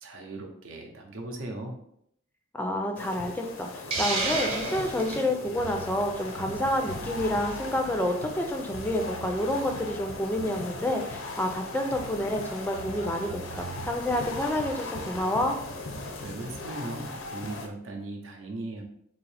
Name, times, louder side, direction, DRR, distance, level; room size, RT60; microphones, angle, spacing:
voice 1, 0.0-1.8 16.2-18.8, right 2 dB, 75° right, 2 dB, 0.7 m, -38 dB
voice 2, 2.5-15.6, left 1 dB, 10° left, 3 dB, 0.3 m, -29 dB
sound 1, 3.0-17.7, left 2 dB, 90° left, 0.6 m, -38 dB
Hiss, 3.9-5.3, right 2 dB, 30° right, 0.8 m, -30 dB
sound 2, 3.9-16.7, right 5 dB, 90° right, 0.3 m, -46 dB
3.7 x 2.7 x 3.3 m, 0.72 s
head